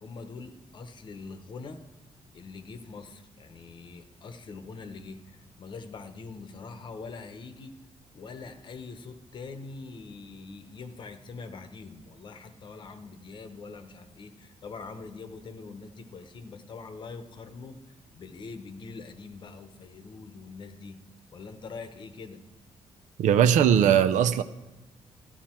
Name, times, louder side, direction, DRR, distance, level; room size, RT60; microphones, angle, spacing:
voice 1, 0.0-1.8 2.3-7.8 8.1-21.0 21.3-22.4, left 4 dB, 40° left, 9 dB, 0.8 m, -43 dB
voice 2, 23.2-24.4, right 9 dB, 85° right, 13 dB, 0.6 m, -20 dB
14.0 x 8.7 x 4.4 m, 1.1 s
cardioid pair, 175°, 12 cm